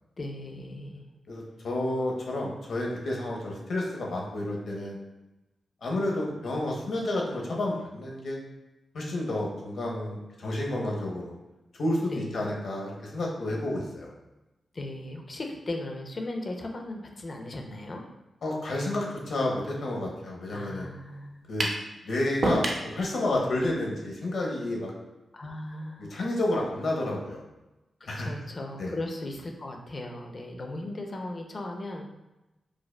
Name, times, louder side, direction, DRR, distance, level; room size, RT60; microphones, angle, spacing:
voice 1, 0.2-1.1 12.0-12.6 14.7-18.0 20.5-21.4 23.3-23.5 25.3-26.2 28.0-32.0, left 2 dB, 35° left, 2 dB, 0.4 m, -37 dB
voice 2, 1.3-5.0 5.8-8.4 8.9-11.3 11.8-14.1 18.4-20.9 21.5-21.7 22.0-24.9 26.1-27.4 28.1-28.3 28.8-28.9, left 1 dB, 65° left, -2 dB, 0.8 m, -30 dB
sound 1, 21.6-21.8 22.4-22.9, right 2 dB, 50° right, 0.5 m, -26 dB
4.8 x 2.3 x 2.2 m, 1.0 s
wide cardioid pair, 145°, 0 cm